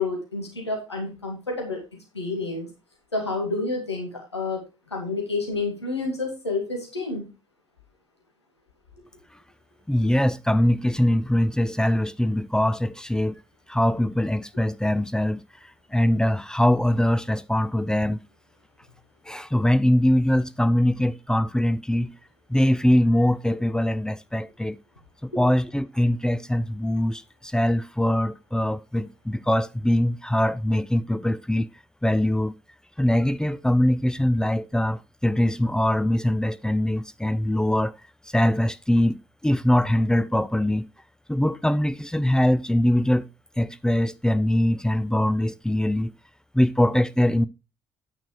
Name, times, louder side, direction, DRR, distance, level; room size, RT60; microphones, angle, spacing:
voice 1, 0.0-2.7 3.1-7.3 25.3-25.4, left 3 dB, 85° left, 2.1 m, -29 dB
voice 2, 9.9-13.4 13.7-15.4 15.9-18.2 19.3-22.1 22.5-24.8 25.2-31.7 32.0-32.6 33.0-37.9 38.3-40.9 41.3-43.3 43.6-46.1 46.5-47.5, left 1 dB, 5° left, 0.5 m, -22 dB
9.1 x 6.2 x 4.5 m
figure-of-eight pair, 50°, 14 cm